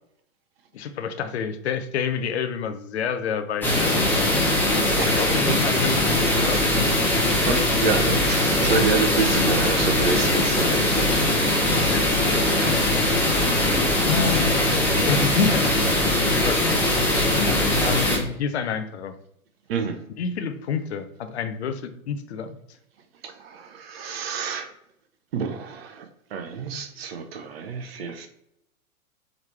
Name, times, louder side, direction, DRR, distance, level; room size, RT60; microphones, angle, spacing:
voice 1, 0.7-4.4 5.1-6.0 6.4-6.7 11.8-12.4 12.7-12.8 14.0-15.7 16.1-16.7 17.8-19.1 20.2-22.6, left 6 dB, 50° left, 8 dB, 0.5 m, -28 dB
sound 1, 3.6-18.2, left 1 dB, 5° left, 0.8 m, -21 dB
voice 2, 7.5-11.1 19.7-20.0 23.2-24.7 25.3-28.3, right 5 dB, 45° right, 7 dB, 0.7 m, -28 dB
4.9 x 3.2 x 3.2 m, 0.77 s
figure-of-eight pair, 110°, 43 cm